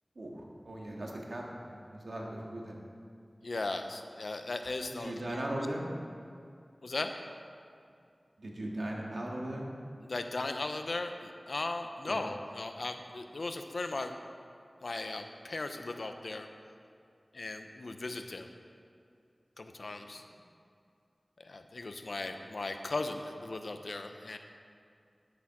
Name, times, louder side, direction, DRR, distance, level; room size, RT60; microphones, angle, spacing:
voice 1, 0.2-2.8 4.9-5.8 8.4-9.7 12.0-12.2 20.0-20.4, right 1 dB, 85° right, -2 dB, 1.8 m, -39 dB
voice 2, 3.4-5.7 6.8-7.1 10.0-14.1 14.8-16.5 17.3-18.5 19.6-20.2 21.4-24.4, left 2 dB, 85° left, 6 dB, 0.7 m, -37 dB
11.0 x 8.0 x 6.0 m, 2.4 s
wide cardioid pair, 65°, 0 cm